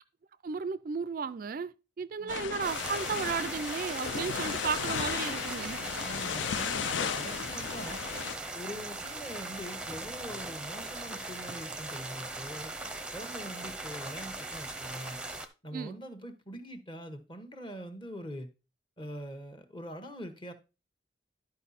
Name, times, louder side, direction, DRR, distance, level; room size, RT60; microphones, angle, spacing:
voice 1, 0.4-5.8 15.7-16.0, right 5 dB, 45° right, 0.3 m, -34 dB
sound 1, 2.3-8.4, left 7 dB, 75° left, 0.4 m, -35 dB
sound 2, 2.6-15.5, right 2 dB, 5° right, 0.7 m, -39 dB
voice 2, 6.0-8.0 8.5-15.2 15.6-18.5 19.0-20.5, equal, 25° left, 1.1 m, -43 dB
12.0 x 4.8 x 4.2 m
head